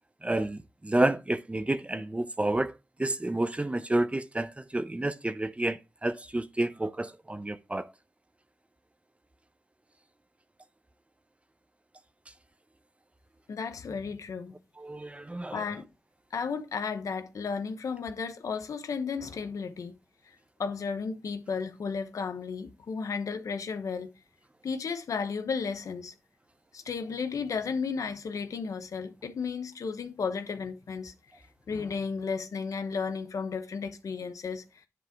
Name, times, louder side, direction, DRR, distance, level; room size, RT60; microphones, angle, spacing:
voice 1, 0.2-2.7 3.0-7.9 14.8-15.6, right 1 dB, 20° right, 0.8 m, -30 dB
voice 2, 13.5-14.6 15.5-15.9 16.3-20.0 20.6-24.1 24.6-26.1 26.7-31.1 31.7-34.9, left 5 dB, 85° left, 1.0 m, -33 dB
10.0 x 3.7 x 4.5 m
cardioid pair, 55°, 6 cm